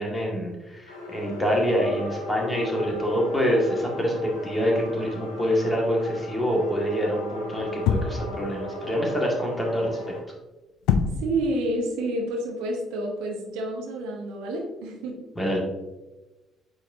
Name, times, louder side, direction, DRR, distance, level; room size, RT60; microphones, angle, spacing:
voice 1, 0.0-4.1 4.4-10.0 15.4-15.6, equal, 15° left, -2 dB, 2.0 m, -26 dB
sound 1, 0.9-10.2, left 2 dB, 80° left, 1.6 m, -38 dB
sound 2, 7.9-8.4 10.9-11.4, left 6 dB, 65° left, 0.4 m, -23 dB
voice 2, 11.2-15.2, right 1 dB, 65° right, 1 dB, 0.9 m, -29 dB
8.6 x 4.3 x 2.8 m, 1.1 s
figure-of-eight pair, 45°, 0 cm